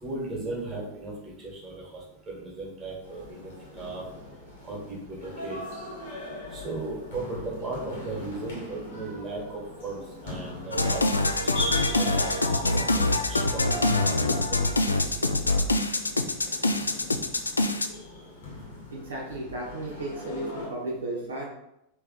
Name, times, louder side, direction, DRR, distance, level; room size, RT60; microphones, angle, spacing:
voice 1, 0.0-1.1 1.4-1.8 2.3-4.0 4.6-5.6 6.5-11.0 11.4-11.7 12.0-12.7 12.9-14.6 14.9-15.3, right 2 dB, 20° right, -3 dB, 1.5 m, -37 dB
sound 1, 3.0-20.7, left 1 dB, 55° left, 1.5 m, -40 dB
sound 2, 10.7-17.9, left 2 dB, 80° left, 0.3 m, -25 dB
voice 2, 18.9-21.4, right 2 dB, 70° right, -4 dB, 1.0 m, -34 dB
3.3 x 3.0 x 3.9 m, 0.83 s
figure-of-eight pair, 90°, 0 cm